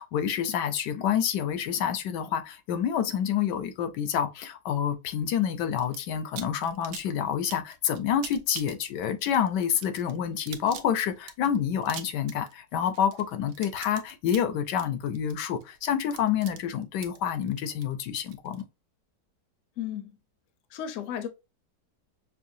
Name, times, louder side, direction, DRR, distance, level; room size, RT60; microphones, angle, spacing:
voice 1, 0.0-18.6, left 8 dB, 80° left, 1.2 m, -28 dB
sound 1, 5.8-6.0 6.4-18.6, right 9 dB, 80° right, 1.2 m, -44 dB
voice 2, 19.8-20.2 20.7-21.3, left 9 dB, 65° left, 0.8 m, -34 dB
5.7 x 2.2 x 2.6 m
omnidirectional pair, 1.9 m